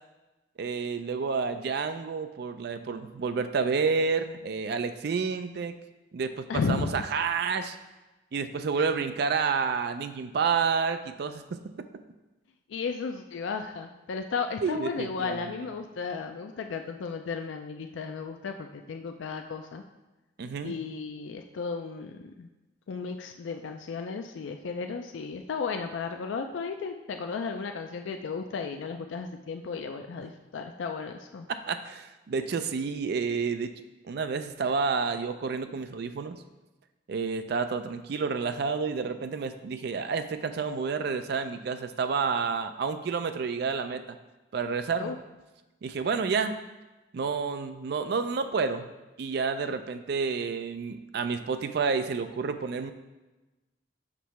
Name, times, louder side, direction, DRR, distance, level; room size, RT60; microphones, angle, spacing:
voice 1, 0.6-5.7 6.1-7.8 8.3-11.4 14.6-15.5 20.4-20.8 31.5-33.7 34.0-36.4 37.1-44.2 44.5-45.2 45.8-46.6 47.1-48.9 49.2-52.9, right 5 dB, 60° right, 9 dB, 0.4 m, -29 dB
voice 2, 6.5-7.0 12.7-19.8 20.6-22.5 22.9-31.5 45.0-45.2, left 5 dB, 90° left, 5 dB, 0.4 m, -34 dB
6.0 x 3.1 x 5.7 m, 1.1 s
head